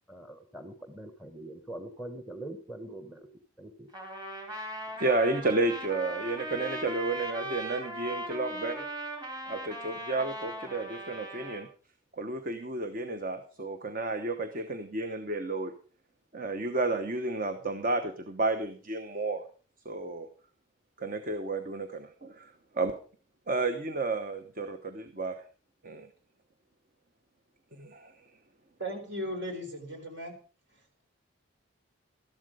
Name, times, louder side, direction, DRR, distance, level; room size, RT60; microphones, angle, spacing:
voice 1, 0.1-3.3 3.6-3.9, right 1 dB, 5° right, 7 dB, 1.1 m, -43 dB
Trumpet, 3.9-11.6, right 1 dB, 20° right, 3.4 m, -39 dB
voice 2, 5.0-8.8 9.5-11.7 12.2-15.7 16.3-19.4 19.8-20.3 21.0-22.9 23.5-25.4 25.8-26.1 27.8-28.1, right 2 dB, 40° right, 8 dB, 1.0 m, -32 dB
voice 3, 28.8-30.3, equal, 60° right, 5 dB, 4.1 m, -36 dB
13.5 x 12.0 x 5.0 m, 0.39 s
head